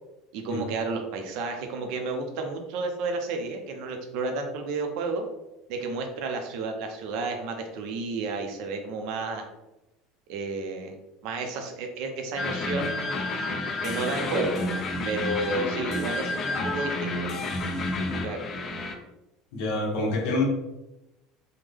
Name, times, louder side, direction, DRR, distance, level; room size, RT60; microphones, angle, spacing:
voice 1, 0.3-5.2 5.7-9.4 10.3-11.0 11.2-13.2 13.8-14.6 15.1-17.3 18.2-18.4, right 3 dB, 60° right, 4 dB, 0.6 m, -31 dB
sound 1, 12.4-18.9, left 2 dB, 30° left, 0.4 m, -30 dB
voice 2, 19.5-20.4, left 2 dB, 65° left, -2 dB, 1.0 m, -26 dB
3.5 x 2.1 x 3.3 m, 0.95 s
cardioid pair, 155°, 0 cm